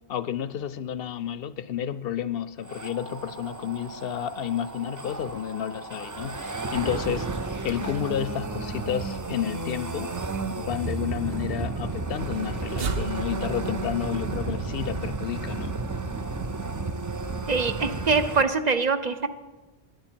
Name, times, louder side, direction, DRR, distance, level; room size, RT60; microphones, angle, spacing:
voice 1, 0.1-10.1 10.6-15.8, left 9 dB, 70° left, 14 dB, 0.7 m, -31 dB
sound 1, 2.6-18.4, right 3 dB, 30° right, 0.4 m, -33 dB
sound 2, 12.2-17.5, right 4 dB, 65° right, 1.0 m, -37 dB
voice 2, 17.5-19.3, right 4 dB, 45° right, 9 dB, 0.8 m, -24 dB
17.5 x 10.5 x 4.5 m, 1.2 s
omnidirectional pair, 1.1 m